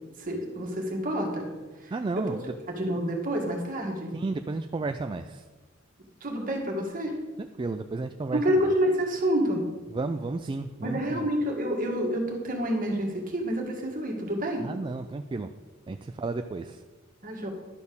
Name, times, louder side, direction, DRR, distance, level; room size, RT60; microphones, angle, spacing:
voice 1, 0.2-1.5 1.8-2.3 2.7-4.1 6.2-7.2 8.3-9.6 10.8-14.7 17.2-17.5, equal, 45° right, 1 dB, 1.9 m, -28 dB
voice 2, 1.9-2.5 4.1-5.4 7.4-8.4 9.9-11.3 14.6-15.5 15.9-16.8, right 3 dB, 25° right, 7 dB, 0.3 m, -32 dB
11.5 x 4.3 x 6.9 m, 1.3 s
head